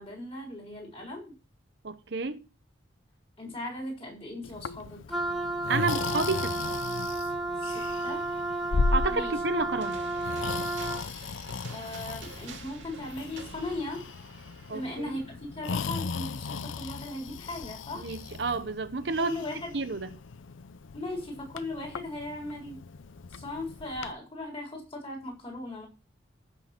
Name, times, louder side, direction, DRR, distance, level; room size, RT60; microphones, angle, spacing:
voice 1, 0.0-1.3 3.4-5.0 7.6-8.3 9.1-9.4 11.7-14.1 14.7-18.1 19.2-19.8 20.9-22.8 23.3-25.9, left 1 dB, 30° left, 4.1 m, -38 dB
voice 2, 1.8-2.4 5.7-6.6 8.9-10.0 14.7-15.2 18.0-19.4 19.7-20.1, right 4 dB, 60° right, 0.8 m, -30 dB
Breathing, 4.4-24.1, left 4 dB, 85° left, 0.6 m, -36 dB
Wind instrument woodwind instrument, 5.1-11.1, right 2 dB, ahead, 1.4 m, -32 dB
sound 1, 9.8-16.4, right 4 dB, 80° right, 2.1 m, -49 dB
15.0 x 6.1 x 4.4 m
head